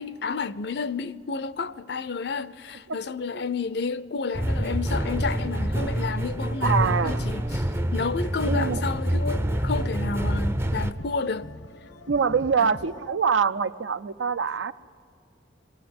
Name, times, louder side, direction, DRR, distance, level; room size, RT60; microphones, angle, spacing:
voice 1, 0.0-7.7 7.9-11.5 12.6-12.7, left 4 dB, 60° left, 0.5 m, -31 dB
sound 1, 4.3-13.1, left 1 dB, 85° left, 1.1 m, -43 dB
sound 2, 4.3-10.9, equal, 15° right, 0.5 m, -26 dB
voice 2, 6.6-7.2 8.5-8.8 12.1-14.7, right 6 dB, 80° right, 0.5 m, -24 dB
21.0 x 16.0 x 9.5 m
head